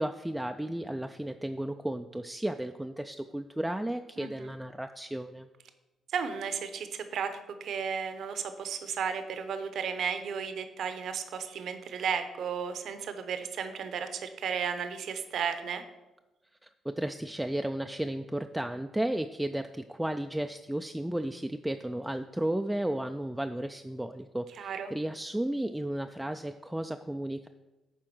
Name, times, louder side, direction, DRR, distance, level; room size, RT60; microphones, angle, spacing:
voice 1, 0.0-5.5 16.6-27.5, right 1 dB, 5° right, 6 dB, 0.3 m, -34 dB
voice 2, 4.2-4.5 6.1-15.8 24.6-24.9, right 7 dB, 70° right, 9 dB, 0.8 m, -34 dB
9.3 x 3.6 x 6.1 m, 1.1 s
cardioid pair, 90°, 0 cm